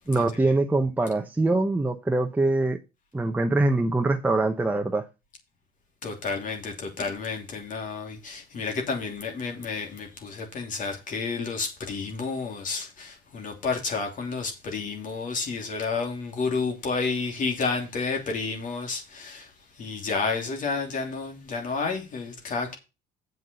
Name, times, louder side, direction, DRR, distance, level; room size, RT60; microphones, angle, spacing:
voice 1, 0.1-2.8 3.1-5.0, right 2 dB, 10° right, 0.9 m, -23 dB
voice 2, 6.0-19.5 19.8-22.7, left 4 dB, 50° left, 2.9 m, -30 dB
8.1 x 5.3 x 6.8 m
cardioid pair, 110°, 17 cm